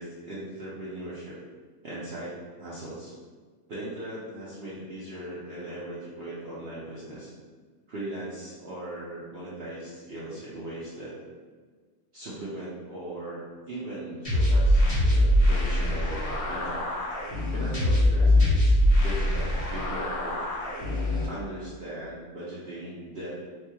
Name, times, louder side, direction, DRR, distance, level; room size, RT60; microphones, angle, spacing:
voice 1, 0.0-1.3 1.8-3.1 3.7-7.3 7.9-11.1 12.1-13.4 13.7-16.8 17.5-20.4 21.2-23.4, right 1 dB, 55° right, -8 dB, 0.8 m, -38 dB
sound 1, 14.2-21.2, left 1 dB, 30° left, 0.8 m, -23 dB
4.2 x 3.1 x 2.2 m, 1.5 s
omnidirectional pair, 1.5 m